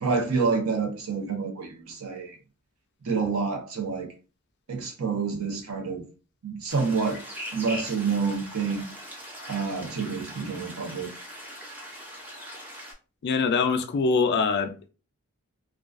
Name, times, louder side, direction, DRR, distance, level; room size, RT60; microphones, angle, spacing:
voice 1, 0.0-2.4 3.0-4.1 4.7-6.1 6.4-7.2 7.5-8.9 9.5-11.1, right 5 dB, 70° right, 0.7 m, -28 dB
sound 1, 6.7-12.9, equal, 10° right, 0.5 m, -41 dB
voice 2, 13.2-14.9, left 4 dB, 50° left, 0.3 m, -24 dB
2.3 x 2.2 x 2.4 m
head